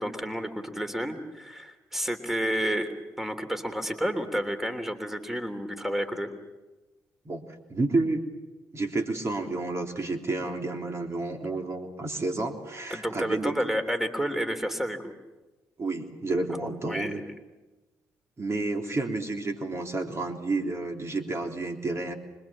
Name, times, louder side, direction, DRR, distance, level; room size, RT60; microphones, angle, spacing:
voice 1, 0.0-6.3 12.9-15.1 16.8-17.2, equal, 5° right, 7 dB, 3.2 m, -30 dB
voice 2, 7.7-8.2 8.7-13.5 15.8-17.2 18.4-22.1, right 2 dB, 40° right, 3 dB, 3.3 m, -30 dB
25.5 x 22.5 x 7.5 m, 1.1 s
hypercardioid pair, 55°, 7 cm